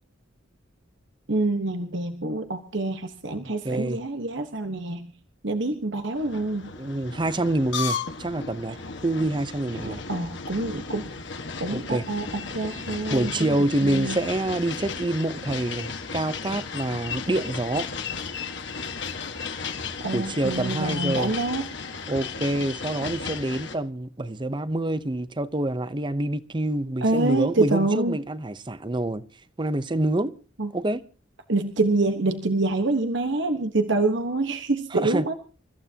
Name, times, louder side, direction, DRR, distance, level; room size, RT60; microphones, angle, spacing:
voice 1, 1.3-5.1 5.4-6.7 9.8-11.1 11.6-12.3 12.5-13.6 13.8-14.2 20.0-21.7 27.0-28.2 30.6-30.7 31.5-35.3, right 2 dB, 60° right, 1.3 m, -26 dB
voice 2, 3.4-4.0 6.8-8.8 9.0-10.0 11.7-12.0 13.1-17.9 20.1-21.3 22.1-29.2 29.6-30.3 30.7-31.0 34.9-35.2, right 1 dB, 25° right, 0.7 m, -27 dB
sound 1, 6.2-23.8, left 5 dB, 60° left, 1.6 m, -34 dB
29.0 x 14.5 x 2.9 m
head